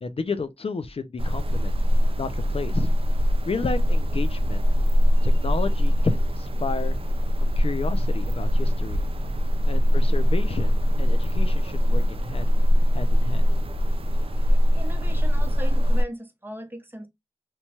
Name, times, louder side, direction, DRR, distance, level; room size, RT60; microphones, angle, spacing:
voice 1, 0.0-1.7 2.2-2.9 3.5-4.6 5.2-7.0 7.4-9.0 9.7-12.5 12.9-13.4, left 4 dB, 55° left, 0.4 m, -31 dB
sound 1, 1.2-16.0, equal, 50° right, 0.4 m, -22 dB
voice 2, 14.3-17.1, right 1 dB, 15° right, 0.7 m, -39 dB
2.9 x 2.2 x 2.7 m
wide cardioid pair, 60°, 12 cm